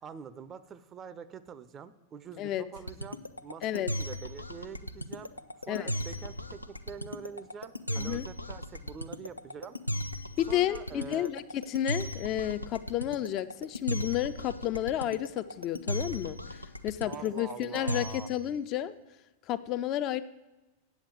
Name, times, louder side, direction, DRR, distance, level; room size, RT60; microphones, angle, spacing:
voice 1, 0.0-5.3 5.6-9.8 10.5-11.3 17.1-18.3, right 7 dB, 25° right, 14 dB, 0.5 m, -45 dB
sound 1, 2.8-18.4, equal, 85° left, 0.5 m, -36 dB
voice 2, 7.9-8.3 10.4-18.9 19.5-20.2, left 12 dB, 35° left, 12 dB, 0.4 m, -31 dB
8.6 x 7.2 x 7.8 m, 1.1 s
figure-of-eight pair, 90°, 0 cm